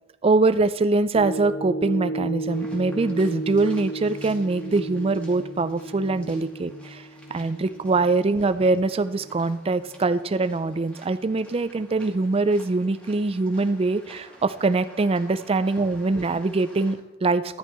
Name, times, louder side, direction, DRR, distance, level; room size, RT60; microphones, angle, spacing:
voice 1, 0.2-17.6, right 3 dB, 30° right, 13 dB, 0.4 m, -23 dB
sound 1, 1.1-9.5 10.0-10.1, right 2 dB, 65° left, 1.6 m, -34 dB
sound 2, 2.5-16.9, equal, 5° left, 2.3 m, -51 dB
14.0 x 12.0 x 3.1 m, 0.98 s
head